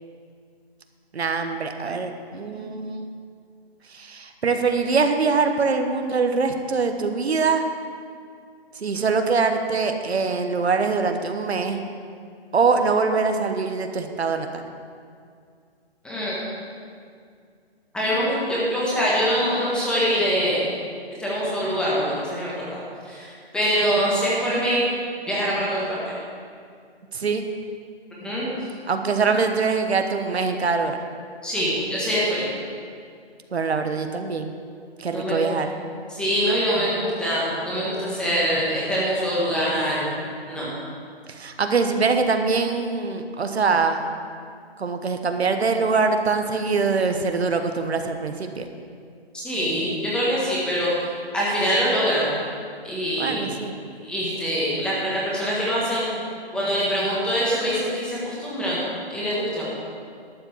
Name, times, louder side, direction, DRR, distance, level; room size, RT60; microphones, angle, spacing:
voice 1, 1.1-3.1 3.9-7.6 8.8-11.9 12.5-14.6 27.1-27.4 28.9-31.0 33.5-34.5 35.0-35.7 41.3-44.0 44.8-48.7 53.2-53.7, right 4 dB, 80° right, 6 dB, 1.2 m, -23 dB
voice 2, 16.0-16.3 17.9-20.7 21.2-24.9 25.3-26.0 28.2-28.6 31.4-32.5 35.1-35.4 36.1-40.1 40.5-40.7 49.3-50.9 51.3-52.3 52.8-53.5 54.0-56.1 56.5-58.8 59.1-59.7, equal, 5° left, -7 dB, 1.4 m, -24 dB
12.0 x 5.8 x 7.3 m, 2.2 s
hypercardioid pair, 155°, 32 cm